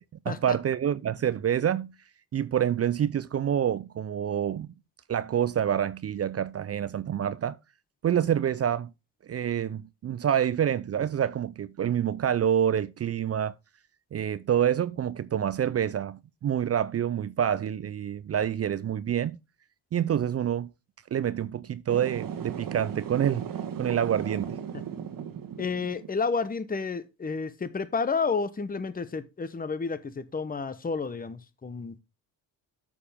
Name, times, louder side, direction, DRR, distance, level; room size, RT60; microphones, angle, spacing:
voice 1, 0.3-1.9 2.3-4.7 5.1-7.6 8.0-8.9 9.2-13.5 14.1-19.4 19.9-20.7 21.1-23.5 23.8-24.6, right 9 dB, 35° right, 0.5 m, -27 dB
sound 1, 21.9-26.1, right 8 dB, 55° right, 1.4 m, -36 dB
voice 2, 25.6-32.0, left 4 dB, 20° left, 1.0 m, -31 dB
8.4 x 7.3 x 3.5 m
supercardioid pair, 70°, 41 cm